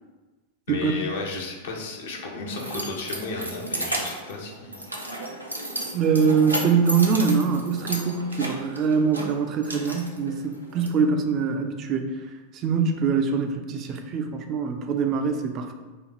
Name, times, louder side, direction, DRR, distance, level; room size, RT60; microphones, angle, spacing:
voice 1, 0.7-4.9, left 3 dB, 60° left, -1 dB, 0.9 m, -33 dB
Keys jangling, 1.8-10.9, right 1 dB, 85° right, 0.7 m, -34 dB
voice 2, 5.9-12.1 12.6-15.7, right 5 dB, 35° right, 5 dB, 0.5 m, -23 dB
4.9 x 2.4 x 4.3 m, 1.3 s
figure-of-eight pair, 90°, 0 cm